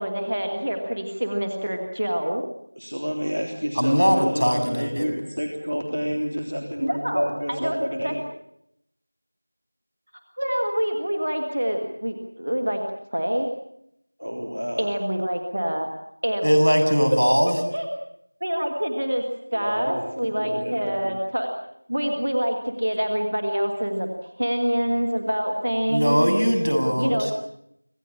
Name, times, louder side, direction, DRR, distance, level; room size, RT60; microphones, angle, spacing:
voice 1, 0.0-2.4 6.8-8.1 10.4-12.8 13.1-13.5 14.8-15.9 16.2-16.7 17.7-17.9 18.4-19.3 19.5-21.5 21.9-26.2 27.0-27.3, equal, 25° right, 4 dB, 1.5 m, -26 dB
voice 2, 2.8-8.2 14.2-14.9 19.5-21.1 26.8-27.2, equal, 60° right, 3 dB, 3.3 m, -30 dB
voice 3, 3.8-5.1 16.4-17.6 25.9-27.3, equal, 80° right, 5 dB, 7.4 m, -20 dB
26.5 x 16.5 x 8.6 m, 0.76 s
figure-of-eight pair, 180°, 0 cm